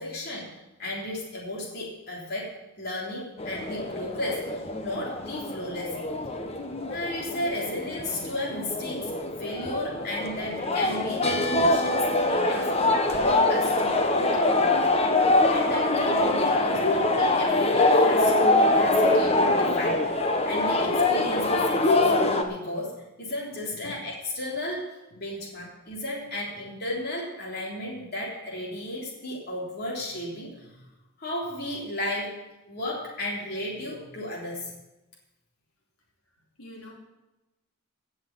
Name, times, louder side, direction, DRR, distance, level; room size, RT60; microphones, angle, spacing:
voice 1, 0.0-6.0 6.9-9.1 9.4-14.9 15.5-20.2 20.4-22.1 22.4-30.9 31.2-32.4 32.7-34.7, left 1 dB, 45° left, -4 dB, 3.6 m, -34 dB
sound 1, 3.4-22.4, left 2 dB, 30° left, 1.1 m, -24 dB
voice 2, 36.6-36.9, left 1 dB, 80° left, -3 dB, 3.5 m, -44 dB
16.5 x 6.4 x 7.4 m, 1.0 s
head